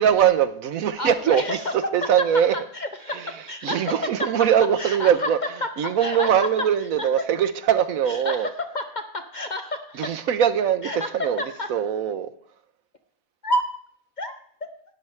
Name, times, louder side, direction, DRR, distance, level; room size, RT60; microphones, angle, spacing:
voice 1, 0.0-1.6 1.9-2.5 3.6-5.4 5.8-8.5 10.0-11.4 11.7-12.3, right 9 dB, 65° right, 11 dB, 0.9 m, -21 dB
voice 2, 1.0-1.7 2.7-3.9 4.2-4.3 4.8-5.3 5.6-6.7 7.0-7.1 8.1-10.1 10.8-11.7 13.4-13.6 14.2-14.4, left 1 dB, 50° left, 7 dB, 0.5 m, -30 dB
12.5 x 10.5 x 3.2 m, 0.62 s
omnidirectional pair, 1.8 m